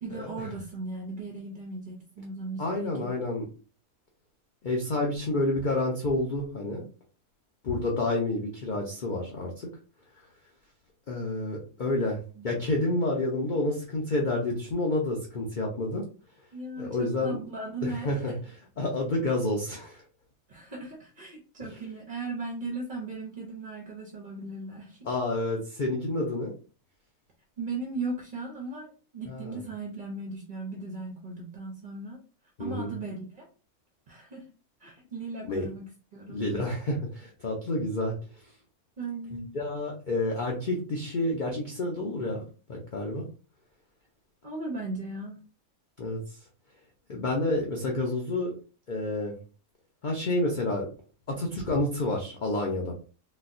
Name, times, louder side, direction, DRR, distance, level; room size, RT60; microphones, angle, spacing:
voice 1, 0.0-3.1 12.4-12.5 16.5-18.4 20.5-25.1 27.6-32.2 32.6-33.5 34.1-34.4 34.8-36.5 39.0-39.5 44.4-45.4, right 3 dB, 50° right, -1 dB, 0.6 m, -37 dB
voice 2, 2.6-3.5 4.6-6.8 7.6-9.7 11.1-16.0 16.8-17.4 17.8-18.3 18.8-20.0 21.6-21.7 25.1-26.5 29.3-29.6 32.6-32.9 35.5-35.7 36.3-38.1 39.5-42.4 42.7-43.2 46.0-46.2 47.1-48.5 48.9-49.3 50.0-50.9 51.3-52.9, left 2 dB, 60° left, -1 dB, 0.5 m, -29 dB
4.0 x 2.2 x 2.5 m, 0.36 s
omnidirectional pair, 1.6 m